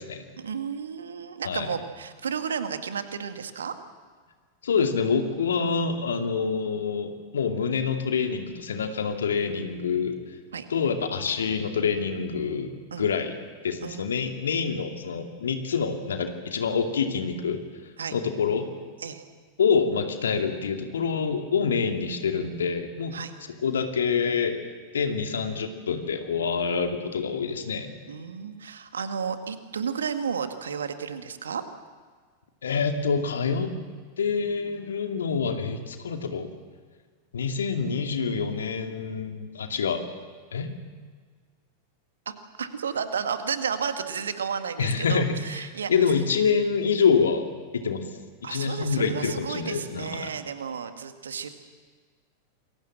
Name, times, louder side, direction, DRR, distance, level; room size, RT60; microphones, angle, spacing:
voice 1, 0.4-3.7 10.5-10.7 12.9-13.1 13.8-14.1 18.0-18.2 19.0-19.2 23.1-23.3 28.1-31.6 42.3-45.9 48.4-51.5, right 6 dB, 70° right, 8 dB, 1.9 m, -32 dB
voice 2, 4.6-10.1 10.7-12.7 13.0-13.4 13.6-17.6 18.1-18.7 19.6-23.2 23.6-24.6 24.9-27.9 32.6-33.7 34.2-36.5 37.3-40.0 40.5-40.7 44.8-48.0 48.4-50.3, left 5 dB, 65° left, 5 dB, 2.5 m, -26 dB
28.0 x 22.5 x 7.6 m, 1.6 s
figure-of-eight pair, 90°, 0 cm